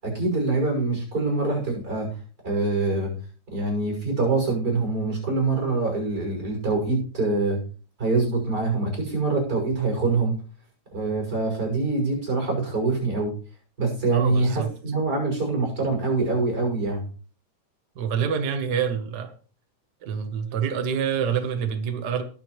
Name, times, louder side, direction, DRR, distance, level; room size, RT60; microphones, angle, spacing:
voice 1, 0.0-2.1 2.4-3.1 3.5-7.6 8.0-10.4 10.9-13.3 13.8-17.0, right 3 dB, 30° right, 1 dB, 6.6 m, -24 dB
voice 2, 14.1-14.7 18.0-19.3 20.0-22.2, right 7 dB, 75° right, 7 dB, 0.9 m, -26 dB
20.5 x 7.7 x 3.2 m, 0.39 s
omnidirectional pair, 3.5 m